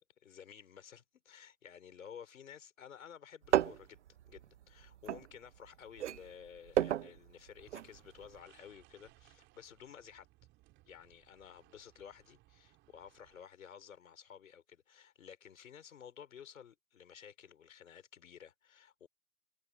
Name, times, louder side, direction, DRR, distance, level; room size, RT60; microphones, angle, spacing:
voice 1, 0.2-10.3 10.9-19.1, left 8 dB, 60° left, 5.2 m, -54 dB
sound 1, 3.4-5.7 6.0-8.0 8.2-8.3, right 11 dB, 50° right, 0.9 m, -33 dB
sound 2, 7.6-13.4, right 19 dB, 25° right, 3.5 m, -66 dB
figure-of-eight pair, 130°, 45 cm